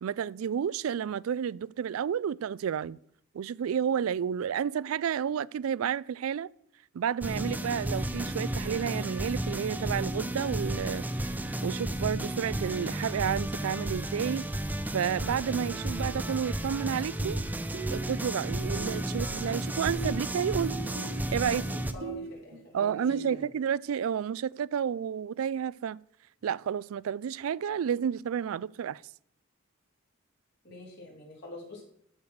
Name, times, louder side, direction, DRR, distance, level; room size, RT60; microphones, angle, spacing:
voice 1, 0.0-3.0 3.3-6.5 6.9-11.0 11.6-14.5 14.9-17.4 17.9-20.8 21.3-21.7 22.7-26.0 26.4-29.0, right 8 dB, 80° right, 0.3 m, -31 dB
sound 1, 7.2-21.9, right 1 dB, 10° right, 0.6 m, -33 dB
sound 2, 15.6-15.8 17.2-17.5 17.7-19.6 19.9-23.4, right 4 dB, 65° right, 1.3 m, -41 dB
voice 2, 21.7-23.5 30.6-31.8, left 2 dB, 55° left, 4.0 m, -46 dB
14.0 x 4.9 x 6.5 m
head